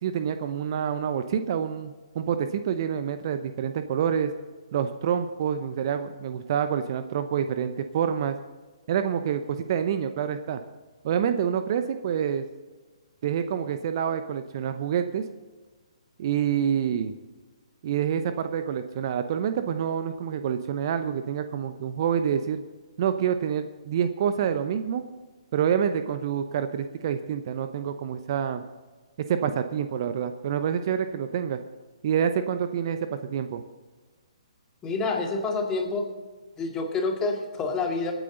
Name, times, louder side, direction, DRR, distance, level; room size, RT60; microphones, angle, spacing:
voice 1, 0.0-4.3 4.7-8.4 8.9-10.6 11.0-12.5 13.2-15.3 16.2-17.1 17.8-22.6 23.0-25.0 25.5-28.6 29.2-31.6 32.0-33.6, right 8 dB, 45° right, 9 dB, 0.8 m, -27 dB
voice 2, 34.8-36.1 36.6-38.1, left 3 dB, 15° left, 2 dB, 2.2 m, -28 dB
23.5 x 9.3 x 3.9 m, 1.3 s
figure-of-eight pair, 130°, 3 cm